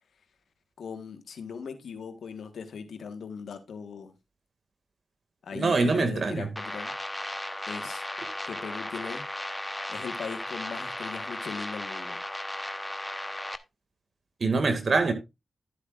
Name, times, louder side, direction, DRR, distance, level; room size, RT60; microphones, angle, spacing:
voice 1, 0.8-4.1 5.4-6.9 7.7-8.0 8.5-9.2 9.9-12.2, left 6 dB, 80° left, 1.4 m, -39 dB
voice 2, 5.5-6.5 14.4-15.1, right 3 dB, 60° right, 2.0 m, -24 dB
sound 1, 6.6-13.6, left 1 dB, 15° left, 0.9 m, -35 dB
12.0 x 8.1 x 2.4 m
supercardioid pair, 40°, 0 cm